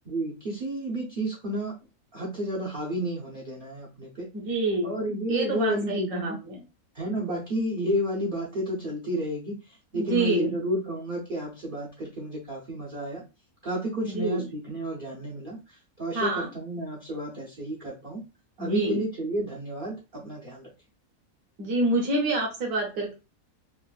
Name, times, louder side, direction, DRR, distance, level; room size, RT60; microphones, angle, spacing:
voice 1, 0.1-1.8 2.1-4.3 4.8-6.4 6.9-9.6 9.9-13.2 13.6-18.2 18.6-20.7, right 1 dB, 50° right, -3 dB, 0.6 m, -31 dB
voice 2, 4.3-5.0 5.3-6.6 9.9-10.6 14.0-14.4 16.1-16.5 18.6-19.0 21.6-23.1, right 2 dB, 80° right, -1 dB, 1.4 m, -27 dB
3.7 x 2.4 x 2.3 m, 0.30 s
omnidirectional pair, 1.5 m